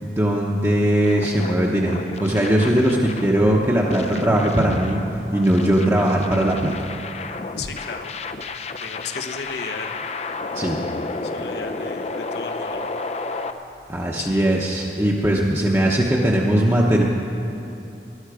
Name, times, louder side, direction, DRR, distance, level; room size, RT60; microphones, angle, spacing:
voice 1, 0.0-5.0 5.3-6.9 10.5-10.8 13.9-17.0, right 1 dB, 15° right, -4 dB, 0.9 m, -19 dB
sound 1, 1.0-13.5, left 3 dB, 35° left, 0.5 m, -32 dB
sound 2, 4.1-7.7 8.0-9.8 10.1-12.0 12.3-14.2, right 1 dB, 65° right, 1.0 m, -39 dB
voice 2, 7.6-8.1 8.8-10.1 11.2-12.8 14.2-14.5, left 5 dB, 70° left, 7 dB, 1.0 m, -35 dB
20.5 x 11.5 x 4.9 m, 3.0 s
head